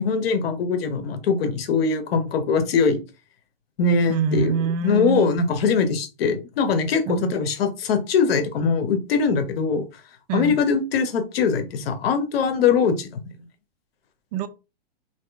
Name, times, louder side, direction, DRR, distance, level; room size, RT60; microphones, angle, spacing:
voice 1, 0.0-3.0 3.8-4.5 4.8-9.8 10.3-13.1, left 5 dB, 75° left, 0.9 m, -22 dB
voice 2, 4.1-5.2 7.1-7.3 10.3-10.6 14.3-14.5, right 6 dB, 45° right, 0.5 m, -25 dB
2.8 x 2.7 x 3.4 m
hypercardioid pair, 135°, 30 cm